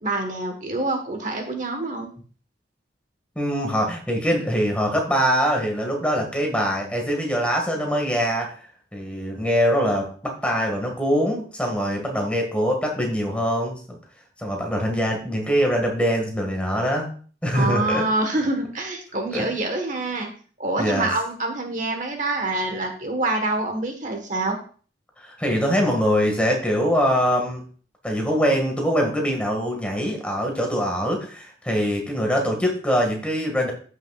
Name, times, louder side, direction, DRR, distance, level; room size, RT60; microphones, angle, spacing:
voice 1, 0.0-2.1 17.5-20.3 20.6-24.6, right 2 dB, 45° right, 4 dB, 1.4 m, -26 dB
voice 2, 3.4-8.5 8.9-14.0 14.4-17.1 17.4-18.1 19.3-19.5 20.8-21.1 25.2-27.6 28.0-33.7, equal, 5° left, 1 dB, 1.9 m, -23 dB
14.0 x 6.3 x 2.4 m, 0.41 s
head